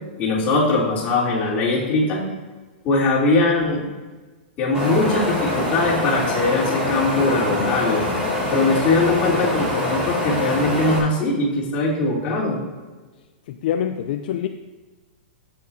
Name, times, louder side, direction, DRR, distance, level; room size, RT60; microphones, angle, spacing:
voice 1, 0.2-2.2 2.8-3.8 4.6-8.0 8.5-12.6, left 3 dB, 25° left, -5 dB, 3.3 m, -21 dB
Wind, 4.7-11.0, left 1 dB, 15° right, 3.1 m, -24 dB
voice 2, 13.5-14.5, left 9 dB, 55° left, 7 dB, 0.5 m, -25 dB
12.5 x 8.5 x 2.8 m, 1.3 s
hypercardioid pair, 150°, 6 cm